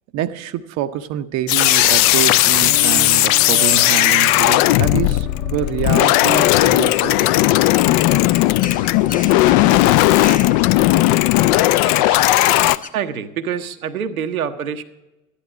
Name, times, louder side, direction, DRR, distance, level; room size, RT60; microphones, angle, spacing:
voice 1, 0.1-7.3, right 11 dB, 40° right, 0.6 m, -26 dB
sound 1, 1.5-12.8, left 16 dB, 45° left, 0.4 m, -15 dB
sound 2, 2.6-9.9, left 5 dB, 75° left, 1.8 m, -34 dB
sound 3, 7.8-12.9, left 4 dB, 20° left, 0.9 m, -37 dB
voice 2, 11.8-12.3 12.9-14.8, right 8 dB, 75° right, 0.8 m, -26 dB
12.5 x 10.0 x 4.9 m
figure-of-eight pair, 65°, 42 cm